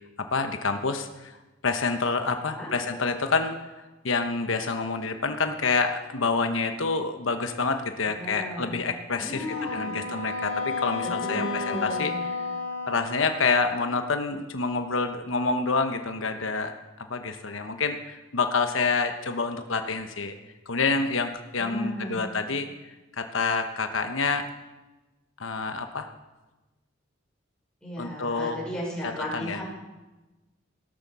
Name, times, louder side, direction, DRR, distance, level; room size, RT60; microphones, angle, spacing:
voice 1, 0.3-1.3 1.6-3.6 4.0-12.1 12.9-16.7 17.1-20.3 20.7-22.7 23.2-24.5 25.4-26.1 28.0-28.6 29.0-29.6, left 4 dB, 85° left, 7 dB, 1.1 m, -27 dB
voice 2, 8.2-8.8 9.2-10.0 11.0-12.2 21.6-22.3 27.8-29.6, equal, 5° left, -4 dB, 6.0 m, -35 dB
Wind instrument woodwind instrument, 9.4-13.9, left 4 dB, 65° left, 2.5 m, -33 dB
17.0 x 12.5 x 6.2 m, 1.1 s
head